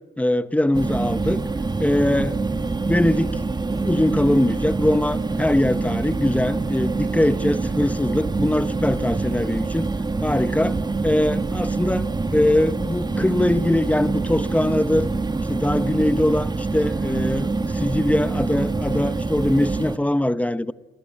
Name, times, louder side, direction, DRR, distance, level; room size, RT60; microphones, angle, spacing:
voice 1, 0.2-1.4 1.8-3.4 3.7-9.9 10.2-10.8 11.0-12.1 12.3-15.1 15.5-20.7, left 1 dB, 5° left, 1.1 m, -22 dB
sound 1, 0.7-20.0, right 3 dB, 20° right, 1.4 m, -25 dB
28.5 x 23.5 x 8.7 m
cardioid pair, 90°, 20 cm